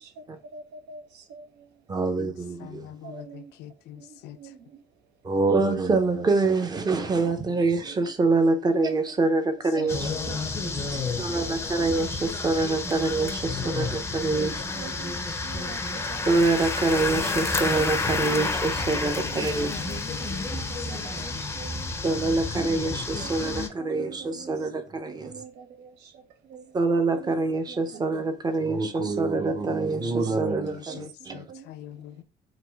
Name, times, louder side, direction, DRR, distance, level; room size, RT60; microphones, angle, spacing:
voice 1, 0.5-1.7 3.0-3.5 4.0-4.8 10.1-10.4 10.6-11.6 12.9-13.0 13.6-13.9 14.3-16.3 18.8-18.9 19.2-19.4 19.6-21.9 23.2-23.5 23.8-24.5 25.0-26.8 27.1-27.3 27.7-28.0 29.0-29.1 29.6-30.1 30.9-31.0 31.3-31.7, right 6 dB, 80° right, 0.7 m, -45 dB
voice 2, 1.9-2.9 5.2-10.1 11.2-14.6 16.3-19.9 22.0-25.4 26.7-31.5, right 3 dB, 25° right, 0.6 m, -25 dB
voice 3, 2.6-4.4 9.8-11.2 11.5-11.6 19.2-21.1 21.3-21.4 30.0-30.2 30.5-32.2, left 11 dB, 80° left, 0.4 m, -42 dB
sound 1, 9.9-23.7, left 3 dB, 15° left, 0.5 m, -30 dB
4.1 x 2.6 x 3.3 m
cardioid pair, 110°, 17 cm